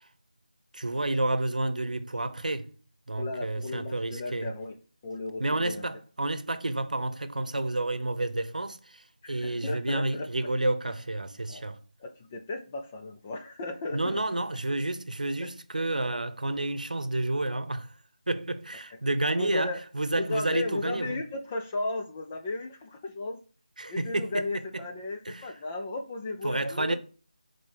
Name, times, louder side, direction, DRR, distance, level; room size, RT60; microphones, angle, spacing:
voice 1, 0.7-2.7 3.1-4.5 5.4-11.8 13.9-17.9 18.3-21.2 23.8-24.9 25.3-25.5 26.4-27.0, right 2 dB, 80° right, 0.8 m, -30 dB
voice 2, 3.2-4.8 5.0-5.9 9.2-10.3 11.5-11.7 12.0-14.2 15.4-15.5 19.4-19.8 20.2-23.4 23.9-26.9, left 2 dB, 10° left, 0.3 m, -35 dB
5.4 x 3.9 x 5.0 m
figure-of-eight pair, 170°, 4 cm